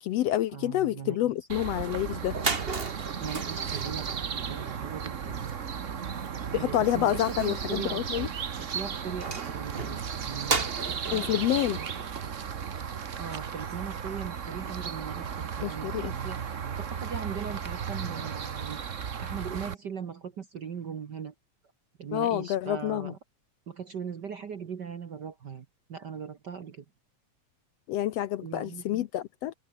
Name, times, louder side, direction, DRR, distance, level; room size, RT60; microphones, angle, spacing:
voice 1, 0.0-2.4 6.5-8.3 11.1-11.8 15.6-16.1 22.1-23.1 27.9-29.5, left 13 dB, 70° left, 1.7 m, -28 dB
voice 2, 0.5-1.3 3.2-5.5 6.5-11.3 11.7-11.9 13.2-16.4 16.8-21.3 22.0-23.2 23.7-26.8 28.4-29.0, right 7 dB, 50° right, 1.4 m, -39 dB
sound 1, 1.5-19.7, right 7 dB, 75° right, 0.7 m, -35 dB
sound 2, 1.9-2.0 2.2-13.0, right 4 dB, 25° right, 1.8 m, -37 dB
omnidirectional pair, 3.3 m